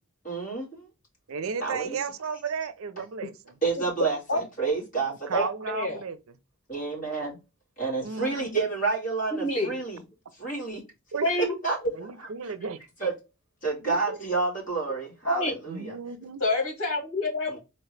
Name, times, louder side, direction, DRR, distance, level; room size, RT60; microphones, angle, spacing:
voice 1, 0.2-0.9 1.6-2.0 3.6-5.5 6.7-7.4 7.8-10.0 10.3-10.8 11.6-11.8 12.4-12.7 13.0-13.1 13.6-15.9 17.5-17.6, right 4 dB, 40° left, 2.7 m, -29 dB
voice 2, 1.3-3.6 5.0-6.2 8.0-8.5 11.1-11.3 11.9-12.8 13.8-14.2 15.7-16.4, right 5 dB, 70° right, 0.5 m, -34 dB
voice 3, 3.8-4.4 5.3-6.0 9.3-9.7 11.2-11.5 11.8-11.9 15.3-15.6 16.4-17.6, left 1 dB, 70° left, 2.3 m, -27 dB
4.2 x 2.9 x 3.2 m
head